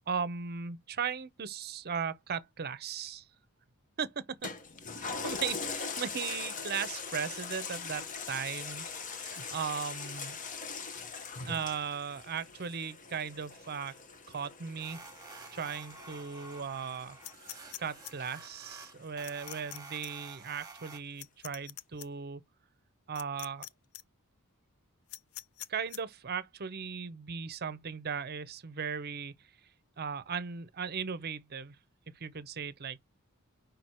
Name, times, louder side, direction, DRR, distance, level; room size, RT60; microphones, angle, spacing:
voice 1, 0.1-3.3 4.0-4.5 5.0-10.4 11.4-13.9 14.3-15.1 15.5-17.2 17.8-22.4 23.1-23.7 25.7-29.3 30.0-31.8 32.1-33.0, right 6 dB, 45° right, 0.7 m, -37 dB
Toilet flush, 4.4-19.2 19.7-19.8, left 5 dB, 35° left, 0.8 m, -42 dB
sound 1, 14.8-21.0, right 3 dB, 15° right, 1.2 m, -50 dB
sound 2, 17.2-18.1 19.2-19.8 20.0-20.1 21.2-22.1 23.2-23.7 23.9-24.0 25.1-26.0, left 14 dB, 65° left, 0.4 m, -43 dB
5.1 x 4.6 x 4.3 m
head